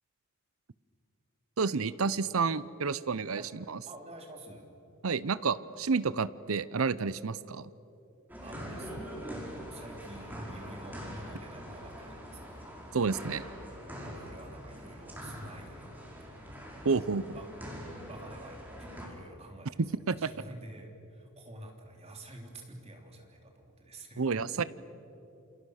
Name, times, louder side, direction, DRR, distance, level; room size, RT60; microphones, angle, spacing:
voice 1, 1.6-3.4 3.7-3.8 5.0-7.7 12.9-13.4 16.8-17.4 19.8-20.3 24.2-24.6, right 4 dB, 70° right, 17 dB, 0.7 m, -30 dB
voice 2, 3.9-4.7 8.4-9.2 9.6-12.6 13.9-16.2 17.1-17.5 17.8-19.8 20.2-24.7, right 1 dB, 30° right, 2 dB, 3.5 m, -49 dB
sound 1, 8.3-19.1, equal, 10° right, 5.1 m, -43 dB
28.0 x 27.0 x 6.5 m, 2.8 s
head